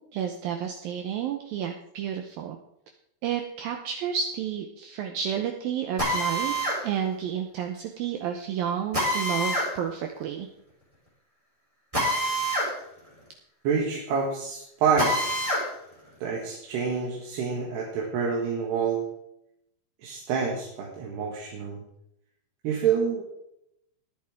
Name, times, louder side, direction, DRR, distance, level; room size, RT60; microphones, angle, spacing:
voice 1, 0.1-2.6 3.2-10.5, right 8 dB, 85° right, 4 dB, 2.1 m, -31 dB
Drill, 6.0-6.8 8.9-9.7 11.9-12.7 13.1-13.2 15.0-15.7, equal, 5° right, 3.8 m, -26 dB
voice 2, 13.7-15.4 16.2-19.1 20.0-21.8 22.6-23.2, right 6 dB, 70° right, -2 dB, 3.6 m, -27 dB
20.5 x 8.8 x 3.6 m, 0.80 s
omnidirectional pair, 5.3 m